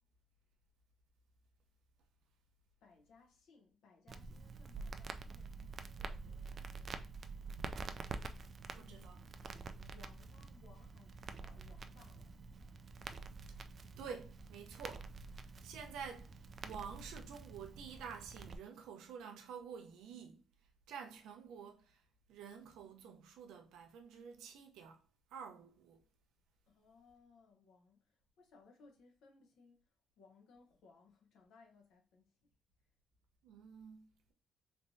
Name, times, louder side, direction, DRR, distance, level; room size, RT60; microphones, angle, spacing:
voice 1, 2.8-6.6 8.8-9.5 9.7-13.3 26.7-29.9 30.2-32.5, left 4 dB, 80° left, 1.0 m, -65 dB
Crackle, 4.1-18.6, right 4 dB, 50° right, 0.4 m, -48 dB
voice 2, 8.7-9.2 14.0-15.1 15.4-20.4 20.9-22.0 22.3-25.0 25.3-26.0 33.4-34.3, right 6 dB, 90° right, 0.7 m, -50 dB
3.4 x 3.1 x 2.7 m
cardioid pair, 90°, 0 cm